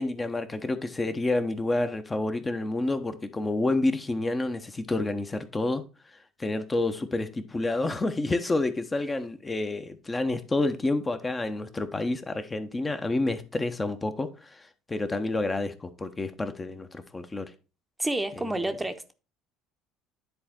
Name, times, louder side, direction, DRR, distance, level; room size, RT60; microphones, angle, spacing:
voice 1, 0.0-5.8 6.4-17.5 18.4-18.7, left 2 dB, 20° left, 1.2 m, -29 dB
voice 2, 18.0-19.1, right 1 dB, 10° right, 1.0 m, -29 dB
10.5 x 4.3 x 4.4 m
hypercardioid pair, 60°, 0 cm